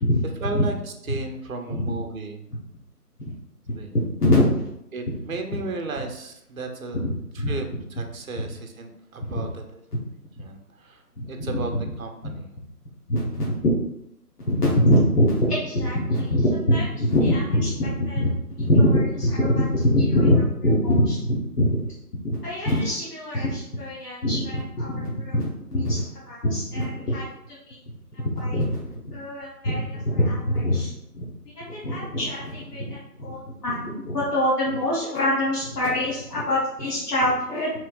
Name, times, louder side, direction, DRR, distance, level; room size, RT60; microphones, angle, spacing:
voice 1, 0.4-2.5 3.7-3.9 4.9-7.1 7.3-7.7 8.0-9.8 10.4-11.0 11.3-11.7 12.0-12.5, right 3 dB, 60° right, 4 dB, 0.6 m, -34 dB
voice 2, 4.2-4.5 7.0-7.5 9.4-9.5 11.2-11.6 12.2-12.3 13.1-13.6 14.5-18.3 18.6-21.9 22.2-27.2 27.7-27.8 28.1-31.2 31.6-37.7, left 1 dB, 75° left, -6 dB, 1.0 m, -23 dB
3.0 x 2.9 x 2.4 m, 0.80 s
figure-of-eight pair, 150°, 47 cm